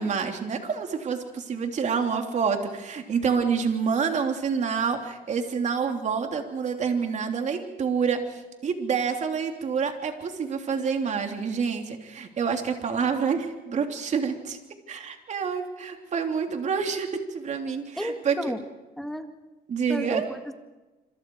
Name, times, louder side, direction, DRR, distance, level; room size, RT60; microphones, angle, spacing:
voice 1, 0.0-14.6 14.9-18.5 19.7-20.3, right 6 dB, 45° right, 4 dB, 3.2 m, -27 dB
voice 2, 18.0-18.6 19.0-19.3 19.9-20.5, equal, ahead, 6 dB, 2.0 m, -32 dB
26.5 x 26.5 x 4.8 m, 1.1 s
cardioid pair, 110°, 17 cm